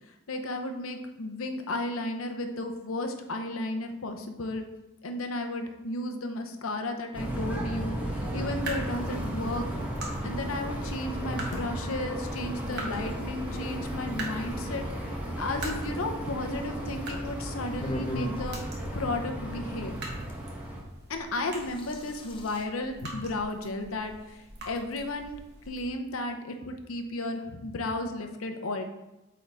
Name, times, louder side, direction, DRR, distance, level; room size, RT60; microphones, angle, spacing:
voice 1, 0.3-4.6 5.0-9.7 10.2-18.6 18.9-20.0 21.1-25.4 25.7-28.8, left 2 dB, 85° left, 5 dB, 0.8 m, -34 dB
sound 1, 7.1-20.8, right 1 dB, 5° right, 1.1 m, -34 dB
sound 2, 8.0-25.9, right 2 dB, 55° right, 1.2 m, -44 dB
sound 3, 17.8-18.4 20.3-20.4 21.4-22.6, left 1 dB, 25° left, 0.7 m, -37 dB
8.5 x 3.7 x 3.5 m, 0.98 s
head